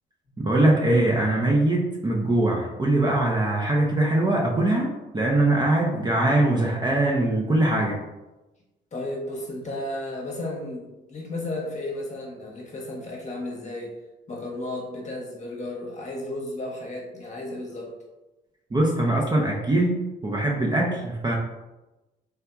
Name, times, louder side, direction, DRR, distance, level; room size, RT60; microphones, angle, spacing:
voice 1, 0.4-8.0 18.7-20.0 20.2-21.4, right 1 dB, 20° right, -2 dB, 0.5 m, -22 dB
voice 2, 8.9-13.9 14.3-18.0, left 1 dB, 35° left, -2 dB, 0.9 m, -33 dB
3.4 x 2.7 x 2.3 m, 1.0 s
cardioid pair, 90°, 20 cm